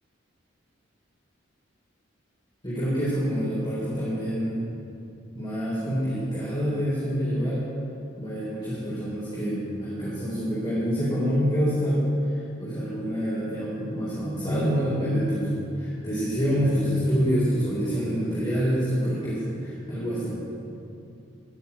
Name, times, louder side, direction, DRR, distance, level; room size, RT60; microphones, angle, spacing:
voice 1, 2.6-4.6 5.3-7.7 8.2-12.0 12.3-20.3, equal, 25° left, -9 dB, 3.9 m, -26 dB
15.5 x 7.3 x 9.8 m, 2.7 s
head